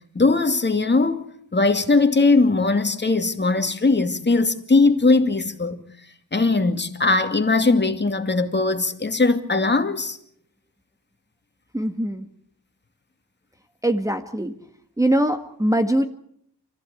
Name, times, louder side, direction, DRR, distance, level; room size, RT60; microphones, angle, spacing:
voice 1, 0.1-1.2 1.5-5.8 6.3-10.2, left 3 dB, 30° left, 2.5 m, -20 dB
voice 2, 11.7-12.3 13.8-14.6 15.0-16.1, right 1 dB, 10° right, 1.7 m, -22 dB
29.0 x 15.0 x 8.6 m
cardioid pair, 80°, 37 cm